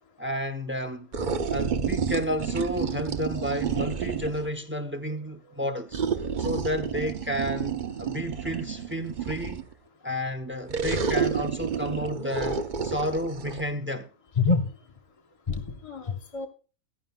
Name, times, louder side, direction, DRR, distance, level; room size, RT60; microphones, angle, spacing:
voice 1, 0.2-1.1 1.5-6.0 6.4-9.6 10.0-14.1, equal, 15° right, 0.4 m, -31 dB
sound 1, 1.1-4.5 5.9-9.7 10.7-13.6, right 6 dB, 45° right, 0.7 m, -30 dB
voice 2, 15.5-16.5, left 4 dB, 30° left, 0.7 m, -27 dB
15.0 x 11.5 x 2.2 m
omnidirectional pair, 1.5 m